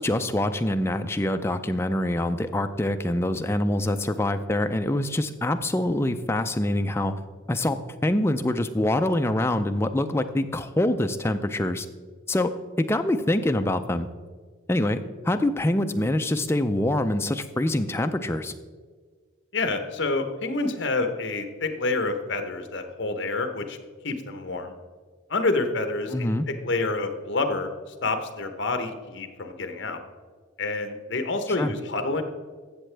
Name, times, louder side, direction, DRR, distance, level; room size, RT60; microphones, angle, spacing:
voice 1, 0.0-7.1 7.5-7.8 8.0-11.9 12.3-12.5 12.8-14.1 14.7-18.5 26.1-26.5 31.6-31.7, left 1 dB, 10° left, 7 dB, 0.4 m, -25 dB
voice 2, 19.5-23.8 24.0-24.8 25.3-27.7 28.0-30.0 30.6-32.2, left 3 dB, 55° left, 7 dB, 0.9 m, -28 dB
14.0 x 7.4 x 3.3 m, 1.5 s
head